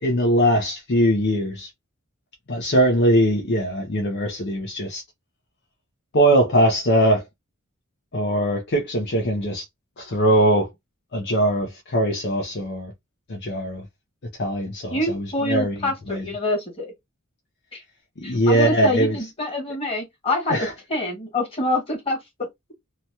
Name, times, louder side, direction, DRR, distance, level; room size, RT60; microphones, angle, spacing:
voice 1, 0.0-1.7 2.5-5.0 6.1-7.2 8.1-9.6 10.0-10.7 11.1-12.9 13.3-13.8 14.4-16.2 18.2-19.2 20.5-20.7, right 1 dB, 50° left, 0.6 m, -21 dB
voice 2, 14.9-16.9 17.7-17.8 18.2-20.6 20.9-22.2, left 1 dB, 25° left, 1.6 m, -26 dB
2.8 x 2.2 x 2.7 m
head